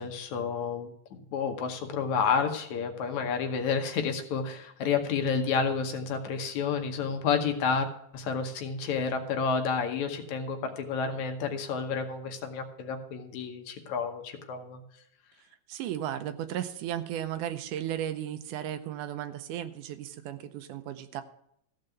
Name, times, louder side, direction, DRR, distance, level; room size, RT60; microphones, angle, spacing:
voice 1, 0.0-7.9 8.1-14.8, left 5 dB, 70° left, 5 dB, 2.3 m, -30 dB
voice 2, 15.7-21.2, right 11 dB, 80° right, 10 dB, 2.2 m, -35 dB
14.5 x 5.4 x 7.8 m, 0.72 s
omnidirectional pair, 3.7 m